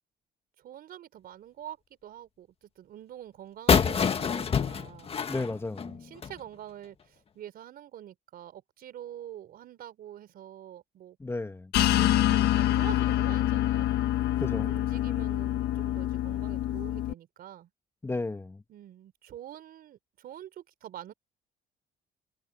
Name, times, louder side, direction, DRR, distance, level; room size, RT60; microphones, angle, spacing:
voice 1, 0.6-5.2 5.8-11.2 11.8-13.9 14.5-17.7 18.7-21.1, right 11 dB, 60° right, 4.8 m, -46 dB
sound 1, 3.7-6.4, left 6 dB, 35° left, 1.7 m, -26 dB
voice 2, 5.3-6.0 11.2-11.7 14.4-14.7 18.0-18.6, left 2 dB, 15° left, 1.8 m, -33 dB
sound 2, 11.7-17.1, left 13 dB, 75° left, 1.5 m, -26 dB
cardioid pair, 110°, 17 cm